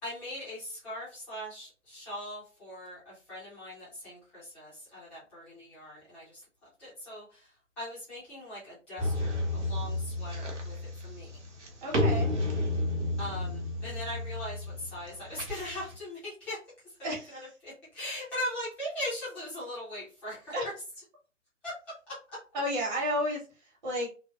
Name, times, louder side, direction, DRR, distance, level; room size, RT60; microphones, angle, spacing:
voice 1, 0.0-6.4 6.8-11.3 13.2-16.6 16.8-16.9 17.3-20.5 21.6-21.7, left 1 dB, 5° left, -11 dB, 0.6 m, -40 dB
sound 1, 9.0-16.0, left 1 dB, 60° right, 1.0 m, -32 dB
voice 2, 11.8-12.3 17.0-17.4 20.5-20.6 22.5-23.4 23.8-24.1, equal, 35° right, -3 dB, 1.2 m, -31 dB
3.2 x 2.3 x 2.3 m, 0.35 s
figure-of-eight pair, 135°, 39 cm